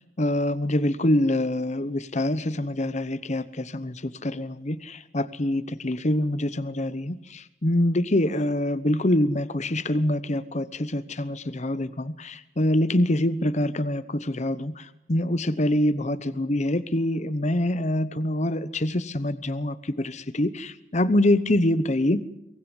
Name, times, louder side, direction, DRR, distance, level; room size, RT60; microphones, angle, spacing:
voice 1, 0.2-22.2, left 1 dB, 35° left, 13 dB, 0.9 m, -25 dB
24.0 x 19.0 x 9.8 m, 0.84 s
head